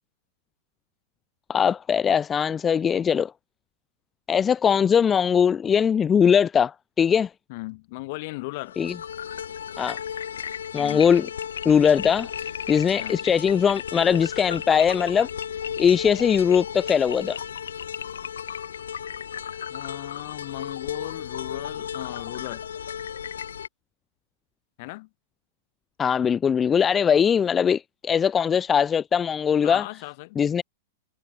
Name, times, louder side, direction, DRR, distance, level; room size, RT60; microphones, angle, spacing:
voice 1, 1.5-3.3 4.3-7.3 8.8-8.9 9.8-10.0 10.7-11.3 11.6-12.3 12.7-15.3 15.8-17.4 26.0-29.8 30.4-30.6, left 7 dB, 20° left, 0.6 m, -21 dB
voice 2, 7.5-8.8 10.8-11.1 13.0-13.3 19.7-22.6 24.8-25.1 29.6-30.4, left 23 dB, 50° left, 5.6 m, -37 dB
sound 1, 8.6-23.7, left 8 dB, 75° left, 1.1 m, -34 dB
figure-of-eight pair, 105°, 0 cm